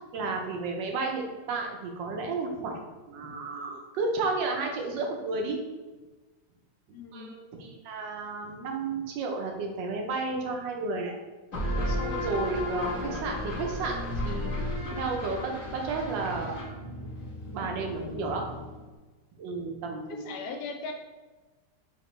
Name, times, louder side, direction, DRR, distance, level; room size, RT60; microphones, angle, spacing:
voice 1, 0.1-2.8 3.1-5.6 7.1-11.1 11.9-16.7 17.0-17.1 17.5-18.4 19.4-20.5, right 3 dB, 75° right, 2 dB, 1.4 m, -32 dB
voice 2, 6.9-7.3 20.1-20.9, left 4 dB, 70° left, 4 dB, 1.1 m, -38 dB
sound 1, 11.5-18.9, left 1 dB, 30° left, 1.2 m, -34 dB
5.0 x 2.8 x 3.2 m, 1.2 s
omnidirectional pair, 2.1 m